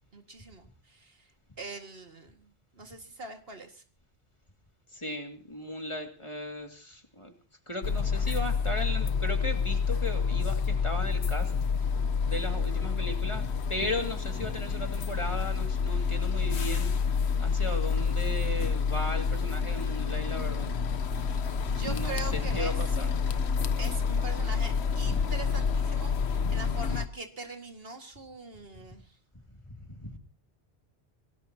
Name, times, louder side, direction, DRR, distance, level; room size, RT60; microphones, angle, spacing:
voice 1, 0.1-1.2 1.6-3.8 21.4-22.8 23.8-29.0, right 3 dB, 65° right, 5 dB, 2.3 m, -42 dB
voice 2, 4.9-7.3 7.7-11.5 11.8-11.9 12.2-20.7 21.8-23.1 25.1-25.3 26.4-26.6 29.8-30.2, left 1 dB, 30° left, 4 dB, 2.4 m, -36 dB
sound 1, 7.8-27.1, left 6 dB, 85° left, 1.3 m, -28 dB
26.5 x 18.5 x 2.9 m, 0.36 s
omnidirectional pair, 1.1 m